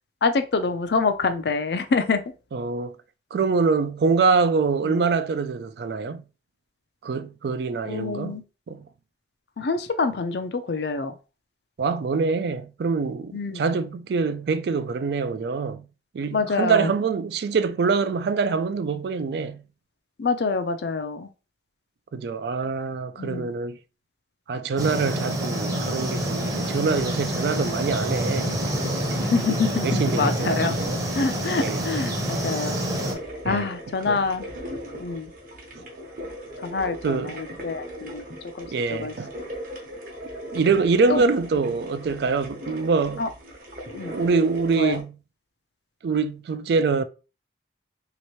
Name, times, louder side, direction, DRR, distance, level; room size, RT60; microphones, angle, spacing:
voice 1, 0.2-2.2 4.8-5.0 7.8-8.4 9.6-11.1 13.3-13.6 16.3-16.9 20.2-21.3 23.2-23.5 29.3-30.8 31.1-32.8 33.4-34.5 35.0-35.3 36.6-38.2 38.6-39.1 41.1-41.2 43.2-43.3 44.0-44.1 44.8-45.0, left 4 dB, 65° left, 0.5 m, -26 dB
voice 2, 2.5-3.0 3.3-6.2 7.0-8.4 8.7-8.9 11.8-15.9 16.1-19.6 22.1-23.8 24.5-28.5 29.8-31.0 31.6-31.9 32.9-33.1 33.4-33.6 34.1-34.2 37.0-37.4 38.7-39.3 40.5-43.3 44.1-45.2 46.0-47.0, right 4 dB, 65° right, 0.3 m, -24 dB
sound 1, 24.8-33.1, right 1 dB, 20° right, 0.7 m, -27 dB
sound 2, 26.4-45.0, equal, 50° right, 0.9 m, -38 dB
3.1 x 2.9 x 3.0 m
head